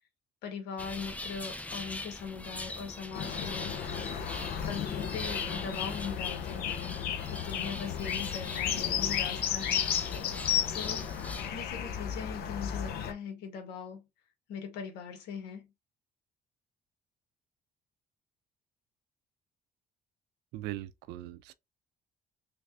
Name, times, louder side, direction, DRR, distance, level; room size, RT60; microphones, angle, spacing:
voice 1, 0.4-3.8 4.6-6.6 7.3-9.9 10.7-11.1 11.5-14.0 14.5-15.7, left 6 dB, 90° left, 1.2 m, -40 dB
sound 1, 0.8-11.5, left 2 dB, 10° left, 0.4 m, -42 dB
sound 2, 3.1-13.1, left 9 dB, 65° left, 0.6 m, -33 dB
voice 2, 20.5-21.5, right 14 dB, 90° right, 0.4 m, -40 dB
3.3 x 3.2 x 2.5 m
cardioid pair, 110°, 17 cm